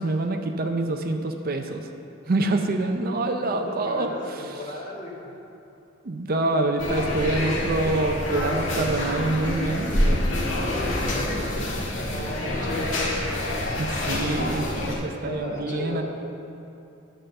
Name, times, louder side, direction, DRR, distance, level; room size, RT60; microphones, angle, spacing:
voice 1, 0.0-1.9 2.3-4.1 4.3-4.4 6.0-10.2 13.8-16.0, right 2 dB, 50° right, 5 dB, 0.6 m, -26 dB
voice 2, 3.5-5.4 10.9-12.9 15.2-16.0, left 1 dB, 40° left, -3 dB, 1.8 m, -35 dB
sound 1, 6.8-14.9, left 1 dB, 70° left, 1.7 m, -26 dB
10.0 x 5.1 x 6.7 m, 2.7 s
head